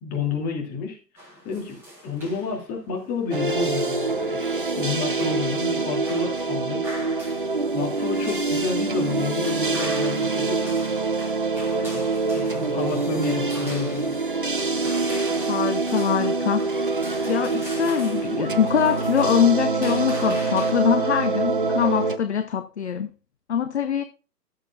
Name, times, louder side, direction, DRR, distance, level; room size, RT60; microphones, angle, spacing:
voice 1, 0.0-1.0 1.4-4.4 4.7-6.8 7.7-10.8 11.8-12.0 12.3-14.1, left 4 dB, 20° left, 2.7 m, -30 dB
sound 1, 1.2-20.7, equal, 5° right, 4.1 m, -43 dB
sound 2, 3.3-22.2, right 3 dB, 35° right, 0.4 m, -25 dB
voice 2, 15.5-16.7 17.3-23.1 23.5-24.0, left 8 dB, 45° left, 0.9 m, -23 dB
15.5 x 7.6 x 2.4 m
figure-of-eight pair, 130°, 49 cm